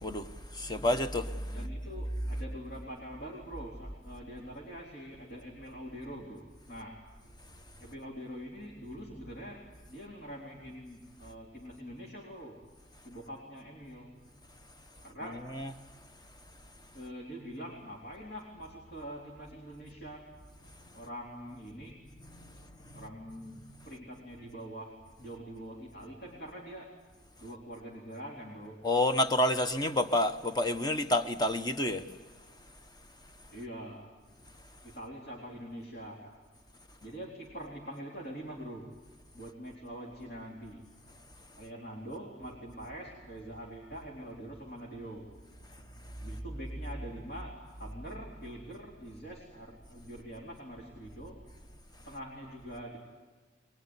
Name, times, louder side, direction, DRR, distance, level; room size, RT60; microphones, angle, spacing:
voice 1, 0.0-1.6 15.5-15.7 22.4-22.5 22.8-23.0 28.8-32.0, left 1 dB, 20° left, 1.1 m, -29 dB
voice 2, 1.5-7.0 7.8-12.6 13.0-14.2 15.0-15.5 16.9-20.3 20.9-22.0 22.9-27.0 27.4-28.9 33.5-34.2 34.8-36.4 37.0-38.9 39.3-40.8 41.6-45.3 46.2-51.6 52.1-53.0, equal, 55° left, 4.1 m, -44 dB
23.0 x 22.5 x 9.9 m
head